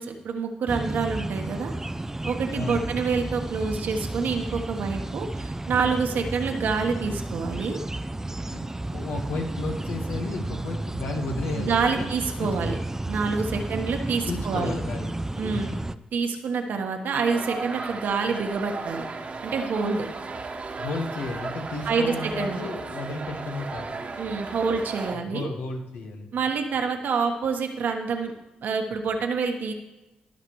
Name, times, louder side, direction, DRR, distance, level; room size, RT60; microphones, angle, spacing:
voice 1, 0.0-1.7 2.2-7.8 11.6-12.7 13.1-14.7 15.4-15.7 16.1-19.0 19.4-20.1 21.8-22.7 24.2-25.5 26.3-28.3 28.6-29.7, right 5 dB, 75° right, 3 dB, 1.3 m, -27 dB
sound 1, 0.7-16.0, right 2 dB, 15° right, 0.5 m, -32 dB
voice 2, 2.5-3.0 8.4-12.1 12.4-12.8 13.5-13.7 14.3-15.1 15.5-15.9 20.7-24.0 25.1-26.2, left 3 dB, 85° left, 2 dB, 1.5 m, -33 dB
sound 2, 17.2-25.2, right 3 dB, 45° right, 1.2 m, -35 dB
18.5 x 6.6 x 3.2 m, 1.1 s
cardioid pair, 65°, 3 cm